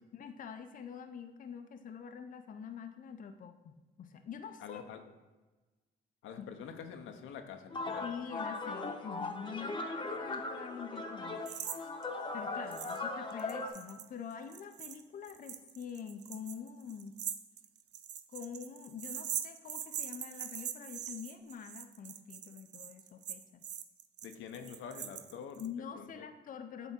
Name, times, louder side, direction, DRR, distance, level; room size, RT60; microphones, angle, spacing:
voice 1, 0.1-4.9 6.4-6.5 8.0-11.4 12.3-17.2 18.3-23.7 24.6-24.7 25.6-26.9, left 7 dB, 45° left, 7 dB, 0.5 m, -45 dB
voice 2, 4.6-5.0 6.2-8.1 24.2-25.6 25.9-26.3, left 7 dB, 80° left, 6 dB, 0.7 m, -46 dB
sound 1, 7.7-13.7, left 3 dB, 25° left, 0.9 m, -39 dB
sound 2, 11.5-11.8 12.0-12.1 12.7-13.0 13.3-25.7, right 9 dB, 60° right, 0.5 m, -42 dB
8.1 x 3.5 x 4.2 m, 1.2 s
cardioid pair, 90°, 20 cm